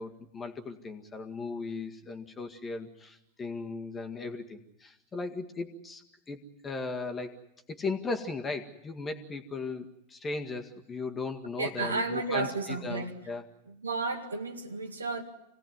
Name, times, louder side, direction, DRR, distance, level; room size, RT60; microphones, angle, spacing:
voice 1, 0.0-7.4 7.7-13.4, left 3 dB, 20° left, 1.9 m, -37 dB
voice 2, 11.6-13.2 13.7-15.2, right 3 dB, 75° right, 2.1 m, -32 dB
27.0 x 18.0 x 9.4 m
figure-of-eight pair, 90°, 0 cm